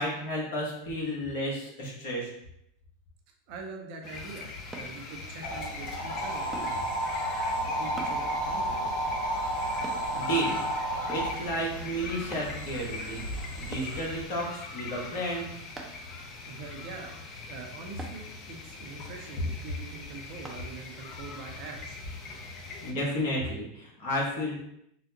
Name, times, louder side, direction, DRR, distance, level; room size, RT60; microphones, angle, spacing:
voice 1, 0.0-2.3 10.1-10.6 11.1-15.5 22.8-24.6, equal, 65° left, -4 dB, 1.2 m, -32 dB
voice 2, 3.5-6.7 7.7-8.9 16.5-17.2 17.5-22.0, right 4 dB, 60° right, 2 dB, 0.6 m, -44 dB
sound 1, 4.0-22.9, left 4 dB, 40° left, 0.6 m, -42 dB
sound 2, 4.7-5.0 6.5-6.8 8.0-8.2 9.8-10.1 11.1-11.4 12.3-12.5 13.7-14.0 15.8-16.1 18.0-18.2 20.4-20.6 21.2-21.3, right 3 dB, 15° right, 0.6 m, -42 dB
sound 3, 5.4-14.2, right 1 dB, 85° left, 0.6 m, -32 dB
3.9 x 2.1 x 2.7 m, 0.79 s
hypercardioid pair, 95°, 0 cm